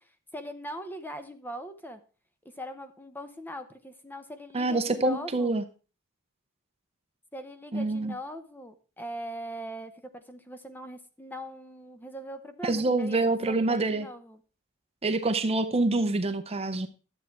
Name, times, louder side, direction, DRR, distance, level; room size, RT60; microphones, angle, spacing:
voice 1, 0.0-2.0 2.6-5.6 7.3-13.2 13.4-14.4, equal, 10° left, 9 dB, 0.8 m, -41 dB
voice 2, 4.5-5.6 7.7-8.1 12.6-14.1 15.0-16.9, right 2 dB, 30° right, 10 dB, 0.7 m, -26 dB
12.0 x 7.5 x 4.5 m, 0.35 s
head